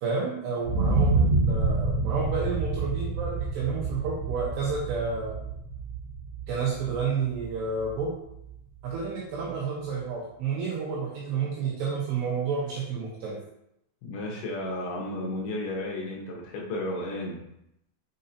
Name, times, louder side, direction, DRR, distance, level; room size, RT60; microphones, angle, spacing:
voice 1, 0.0-5.3 6.5-8.1 8.8-13.4, right 5 dB, 75° right, -4 dB, 2.6 m, -30 dB
sound 1, 0.6-8.5 9.0-9.1, right 3 dB, 50° right, 2.1 m, -28 dB
voice 2, 14.0-17.5, left 1 dB, 75° left, -2 dB, 3.0 m, -33 dB
6.6 x 5.4 x 2.7 m, 0.81 s
omnidirectional pair, 5.8 m